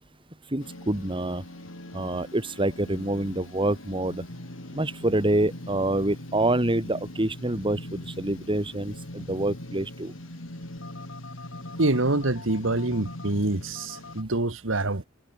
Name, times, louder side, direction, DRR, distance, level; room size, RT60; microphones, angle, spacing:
voice 1, 0.5-1.4 1.9-4.2 4.7-10.1, right 1 dB, 25° right, 2.2 m, -26 dB
sound 1, 0.6-14.2, left 1 dB, 75° left, 3.9 m, -41 dB
voice 2, 11.8-15.1, right 2 dB, 70° right, 1.8 m, -26 dB
head